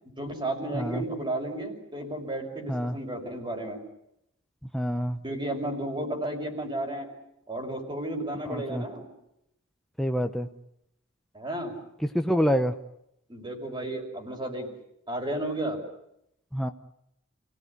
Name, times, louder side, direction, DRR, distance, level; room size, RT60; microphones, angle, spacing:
voice 1, 0.2-3.8 5.2-7.1 7.5-9.1 11.3-11.7 13.3-14.7 15.1-15.8, right 1 dB, 25° right, 2 dB, 5.9 m, -33 dB
voice 2, 0.7-1.0 2.7-3.0 4.7-5.2 8.5-8.9 10.0-10.5 12.1-12.8 16.5-16.7, equal, ahead, 5 dB, 0.9 m, -26 dB
29.0 x 18.0 x 9.8 m, 0.80 s
head